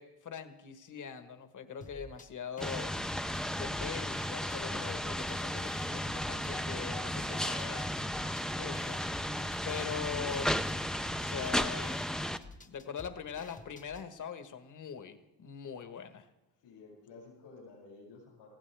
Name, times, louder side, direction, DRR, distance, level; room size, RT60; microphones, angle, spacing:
voice 1, 0.0-2.9 3.6-7.9 8.5-9.0 9.6-10.5 11.2-12.0 12.7-16.3, left 7 dB, 45° left, 9 dB, 1.4 m, -42 dB
sound 1, 1.8-2.3 2.6-4.6 4.9-6.5 6.8-14.1, left 3 dB, 20° left, 1.0 m, -52 dB
voice 2, 2.5-3.0 16.6-18.6, left 3 dB, 80° left, -5 dB, 6.7 m, -53 dB
sound 2, 2.6-12.4, equal, ahead, 0.5 m, -34 dB
19.5 x 15.5 x 3.4 m, 0.99 s
cardioid pair, 90°, 43 cm